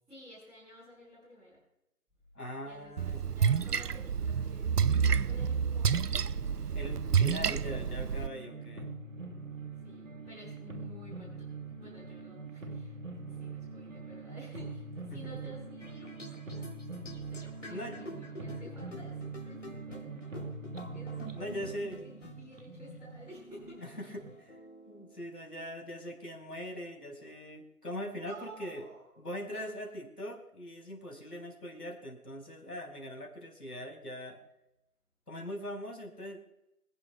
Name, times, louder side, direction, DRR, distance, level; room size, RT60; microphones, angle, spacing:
voice 1, 0.1-1.6 2.6-6.1 9.7-16.7 17.0-20.2 20.9-24.1 28.1-29.2 29.5-29.7, equal, ahead, -19 dB, 1.8 m, -53 dB
voice 2, 2.3-3.2 6.7-8.9 15.2-15.5 17.7-18.3 21.3-22.2 24.0-24.6 24.9-28.8 29.2-34.4 35.3-36.5, equal, 85° left, 3 dB, 4.6 m, -41 dB
Splash splatter, 3.0-8.3, right 6 dB, 80° right, 0.7 m, -29 dB
sound 1, 5.3-24.4, right 3 dB, 55° right, 1.5 m, -44 dB
sound 2, 15.8-25.3, left 1 dB, 50° left, 3.6 m, -49 dB
26.5 x 10.0 x 2.3 m, 0.87 s
figure-of-eight pair, 165°, 46 cm